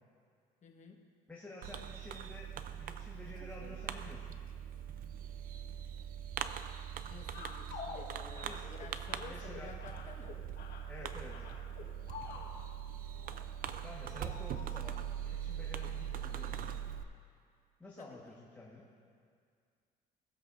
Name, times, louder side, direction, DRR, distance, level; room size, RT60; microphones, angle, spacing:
voice 1, 0.6-1.0 7.1-10.4 18.0-18.2, left 5 dB, 45° left, 2 dB, 1.3 m, -52 dB
voice 2, 1.3-2.5 2.8-4.4 8.4-8.7 9.2-9.7 10.9-11.4 13.8-16.7 17.8-18.9, left 2 dB, 10° left, -5 dB, 1.4 m, -50 dB
Fireworks, 1.6-17.0, right 9 dB, 55° right, 0.5 m, -42 dB
sound 1, 7.3-12.7 13.1-13.5 14.2-14.8 15.6-15.9 16.3-16.4, left 5 dB, 65° left, 1.4 m, -49 dB
19.5 x 7.8 x 2.6 m, 2.2 s
cardioid pair, 110°, 17 cm